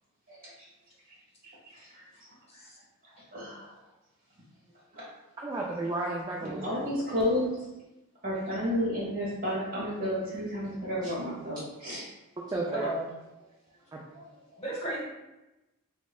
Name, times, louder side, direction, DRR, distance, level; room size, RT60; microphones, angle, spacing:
voice 1, 1.4-2.0 3.3-3.8 4.9-5.0 6.4-7.6 8.2-12.0 14.1-14.2, left 1 dB, 40° right, -7 dB, 1.5 m, -32 dB
voice 2, 5.4-6.9 11.0-11.1 12.5-12.9 13.9-14.0, right 2 dB, 20° right, -3 dB, 0.3 m, -33 dB
voice 3, 12.7-13.1 14.6-15.0, right 1 dB, 25° left, -5 dB, 1.1 m, -34 dB
6.0 x 2.1 x 2.3 m, 1.0 s
head